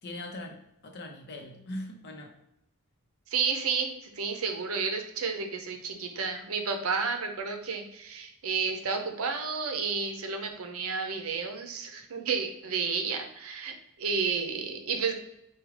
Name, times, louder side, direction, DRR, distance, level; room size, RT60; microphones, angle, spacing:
voice 1, 0.0-2.3, left 1 dB, 50° left, 2 dB, 0.7 m, -41 dB
voice 2, 3.3-13.7 14.0-15.1, right 5 dB, 75° right, 4 dB, 0.6 m, -31 dB
4.8 x 2.3 x 3.2 m, 0.83 s
head